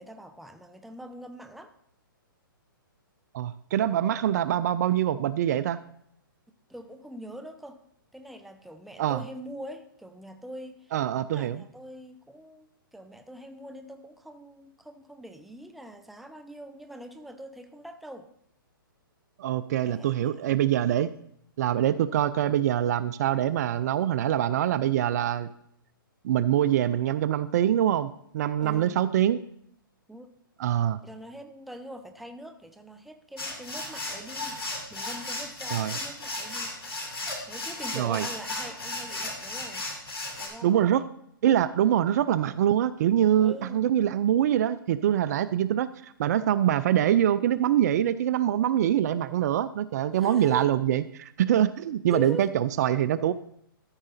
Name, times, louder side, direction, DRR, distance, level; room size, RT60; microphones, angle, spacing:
voice 1, 0.0-1.7 6.7-7.8 8.1-10.9 11.3-18.3 19.7-20.4 28.6-29.0 30.1-30.3 31.0-34.6 34.9-36.7 37.5-39.9 40.4-41.0 43.4-43.8 50.1-50.7 52.1-52.5, right 1 dB, ahead, 8 dB, 0.5 m, -43 dB
voice 2, 3.3-5.8 9.0-9.2 10.9-11.6 19.4-21.1 21.6-25.5 26.2-29.4 30.6-31.0 35.7-36.0 37.9-38.2 40.6-41.0 41.4-53.3, right 11 dB, 50° right, 15 dB, 0.4 m, -24 dB
sound 1, 33.4-40.5, left 2 dB, 90° left, 2.3 m, -35 dB
13.5 x 4.9 x 4.1 m, 0.70 s
hypercardioid pair, 135°, 12 cm